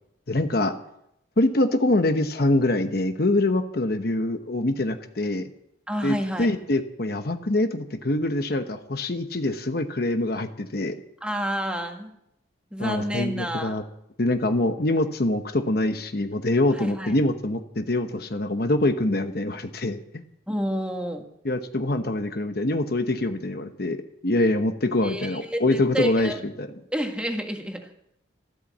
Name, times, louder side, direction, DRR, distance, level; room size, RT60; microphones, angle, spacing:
voice 1, 0.3-0.7 1.4-5.5 6.0-11.0 12.8-13.8 14.2-20.2 21.4-26.7, left 2 dB, 50° left, 8 dB, 0.9 m, -24 dB
voice 2, 5.9-6.5 11.2-12.1 12.7-13.8 16.8-17.1 20.5-21.3 25.0-26.4 26.9-27.9, equal, 5° right, 3 dB, 1.6 m, -29 dB
13.5 x 12.5 x 7.3 m, 0.77 s
head